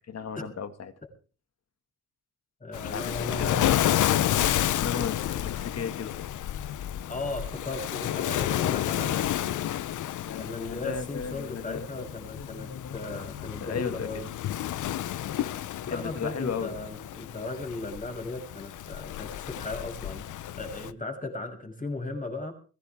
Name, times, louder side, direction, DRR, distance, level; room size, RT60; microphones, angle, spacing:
voice 1, 0.1-0.9 2.9-3.1 3.4-3.7 4.8-6.3 10.2-14.1 15.9-16.7, left 6 dB, 60° left, 9 dB, 2.0 m, -36 dB
voice 2, 2.6-3.7 7.1-9.2 10.3-14.3 15.8-20.3 20.5-22.5, left 2 dB, 25° left, 3 dB, 6.4 m, -36 dB
Waves surf, 2.7-20.9, left 12 dB, 85° left, 0.8 m, -31 dB
21.5 x 16.5 x 3.6 m, 0.38 s
cardioid pair, 80°, 30 cm